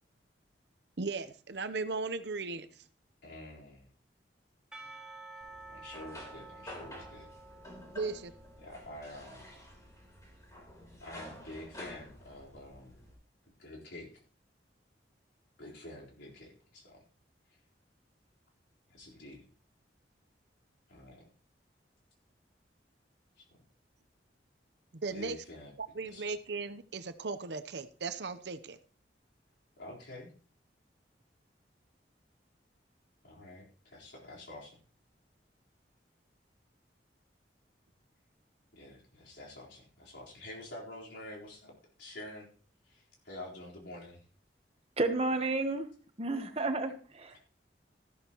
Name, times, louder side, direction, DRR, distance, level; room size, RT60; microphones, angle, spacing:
voice 1, 1.0-2.7 7.9-8.3 24.9-25.4 25.8-28.8, right 4 dB, 70° right, 11 dB, 0.8 m, -37 dB
voice 2, 3.2-3.9 5.7-7.3 8.6-9.5 11.0-13.0 13.6-14.1 15.6-17.0 18.9-19.5 20.9-21.3 23.4-23.5 25.1-25.7 26.0-26.3 29.8-30.3 33.2-34.8 38.7-42.5 42.8-44.2 47.3-47.4, left 1 dB, 85° left, -3 dB, 4.2 m, -48 dB
Percussion / Church bell, 4.7-10.0, right 3 dB, 5° right, 1.3 m, -51 dB
sound 1, 5.4-13.1, left 1 dB, 20° left, 3.7 m, -50 dB
voice 3, 45.0-45.9 46.2-47.4, right 2 dB, 35° right, 7 dB, 1.2 m, -31 dB
13.5 x 12.5 x 3.0 m, 0.40 s
head